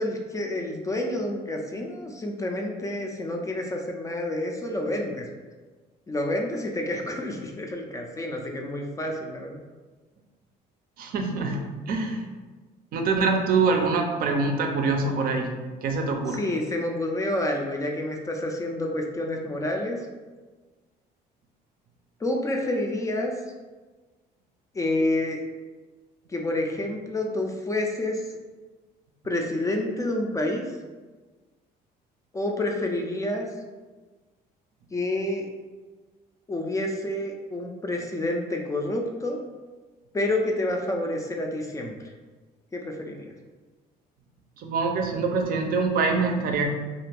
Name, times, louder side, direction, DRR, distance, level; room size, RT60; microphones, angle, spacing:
voice 1, 0.0-5.3 6.1-9.6 16.3-20.0 22.2-23.3 24.7-25.4 26.3-28.2 29.2-30.6 32.3-33.4 34.9-35.5 36.5-39.4 40.1-42.0 42.7-43.3, left 1 dB, 20° left, 1 dB, 0.3 m, -28 dB
voice 2, 11.0-12.2 12.9-15.5 15.8-16.4 44.6-46.7, right 4 dB, 60° right, 3 dB, 0.5 m, -24 dB
2.5 x 2.4 x 3.3 m, 1.3 s
cardioid pair, 110°, 17 cm